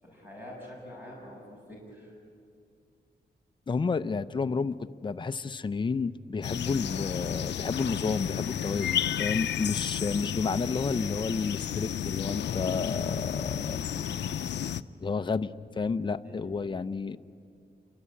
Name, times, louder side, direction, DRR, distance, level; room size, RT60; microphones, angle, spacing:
voice 1, 0.0-2.1 13.5-13.9 16.2-16.5, left 1 dB, 10° right, -3 dB, 6.4 m, -46 dB
voice 2, 3.7-13.8 15.0-17.2, left 4 dB, 25° left, 10 dB, 0.6 m, -31 dB
sound 1, 6.4-14.8, left 9 dB, 85° left, 0.6 m, -32 dB
28.0 x 24.0 x 8.6 m, 2.4 s
wide cardioid pair, 125°, 18 cm